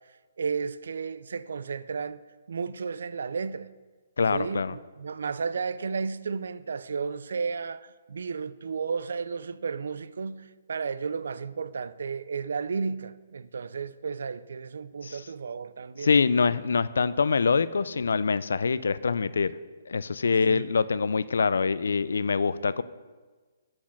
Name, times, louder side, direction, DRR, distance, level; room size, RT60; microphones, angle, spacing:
voice 1, 0.4-2.2 2.5-3.7 4.3-16.1 20.5-20.7, right 5 dB, 60° right, 0.3 m, -33 dB
voice 2, 4.2-4.8 15.0-15.2 16.0-19.5 19.9-22.8, left 5 dB, 75° left, 0.3 m, -25 dB
6.2 x 6.0 x 6.2 m
hypercardioid pair, 180°, 0 cm